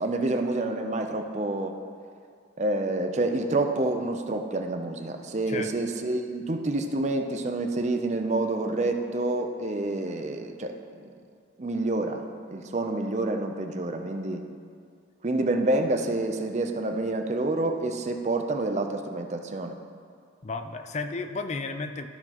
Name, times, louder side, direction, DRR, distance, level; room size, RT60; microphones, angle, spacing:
voice 1, 0.0-1.7 2.6-10.7 11.0-11.1 11.6-14.5 15.2-19.8, right 2 dB, 35° right, 5 dB, 0.5 m, -28 dB
voice 2, 20.4-22.1, left 3 dB, 35° left, 7 dB, 0.4 m, -33 dB
13.5 x 5.9 x 3.0 m, 2.2 s
head